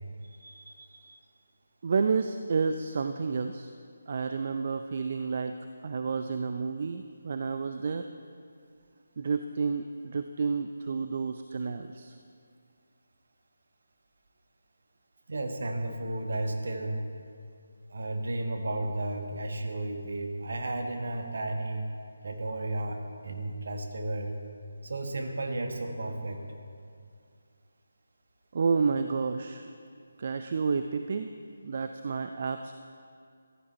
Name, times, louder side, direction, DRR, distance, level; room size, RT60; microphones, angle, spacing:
voice 1, 0.4-1.2 15.3-17.0 17.9-21.9 22.2-24.3 24.8-26.4, right 2 dB, 60° right, 4 dB, 1.4 m, -33 dB
voice 2, 1.8-3.7 4.1-5.6 5.8-8.1 9.2-12.1 28.5-29.6 30.2-31.3 31.6-32.7, right 5 dB, 45° right, 8 dB, 0.4 m, -30 dB
14.5 x 11.0 x 4.2 m, 2.4 s
figure-of-eight pair, 155°, 0 cm